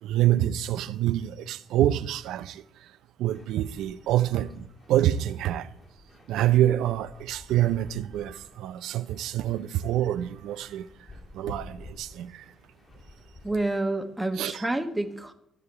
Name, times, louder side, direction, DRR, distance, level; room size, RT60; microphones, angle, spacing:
voice 1, 0.0-2.6 3.2-5.7 6.3-10.9 11.3-12.5 14.4-14.7, right 12 dB, 90° right, 0.5 m, -26 dB
sound 1, 3.3-13.6, left 2 dB, 35° left, 2.9 m, -50 dB
voice 2, 13.4-15.3, right 2 dB, 10° right, 1.2 m, -28 dB
14.0 x 4.9 x 8.1 m
cardioid pair, 90°, 0 cm